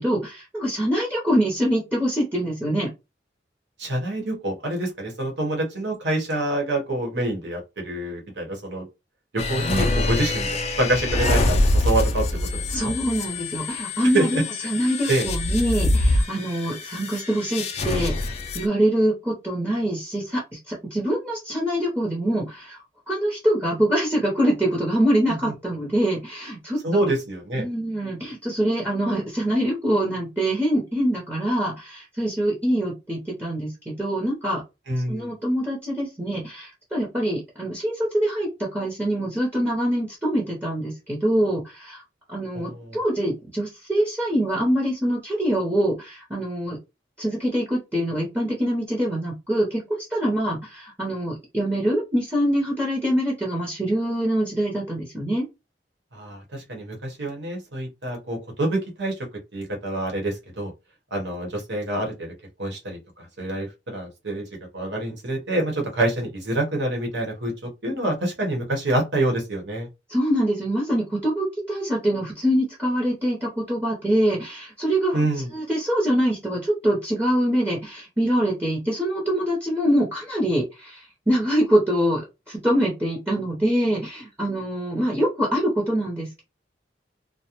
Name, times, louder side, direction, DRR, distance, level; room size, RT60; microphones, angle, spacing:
voice 1, 0.0-2.9 12.7-27.1 27.5-34.6 35.1-42.0 42.3-46.8 47.2-55.4 70.1-75.2 75.5-82.2 82.5-86.4, right 1 dB, 10° right, 0.7 m, -24 dB
voice 2, 3.8-8.9 9.3-12.3 12.5-12.9 14.1-14.7 15.1-15.3 25.3-25.5 26.8-27.7 34.9-35.3 42.5-43.0 56.1-59.2 59.5-60.7 61.1-62.3 62.6-64.5 64.7-69.9 75.1-75.5, right 1 dB, 75° right, 0.9 m, -26 dB
sound 1, 9.4-18.6, left 2 dB, 35° left, 0.4 m, -25 dB
2.4 x 2.1 x 2.9 m
head